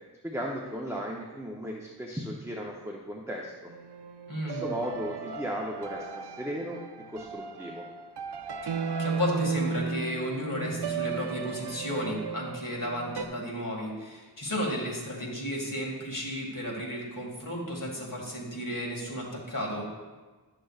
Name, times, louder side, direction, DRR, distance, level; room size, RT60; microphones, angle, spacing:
voice 1, 0.2-3.7 4.4-6.8 7.1-7.8, equal, 5° right, -1 dB, 0.7 m, -36 dB
sound 1, 3.7-13.2, right 5 dB, 85° right, 0.5 m, -35 dB
voice 2, 4.3-4.6 8.6-19.9, equal, 55° left, -3 dB, 2.1 m, -33 dB
11.5 x 6.4 x 2.4 m, 1.3 s
wide cardioid pair, 55°, 40 cm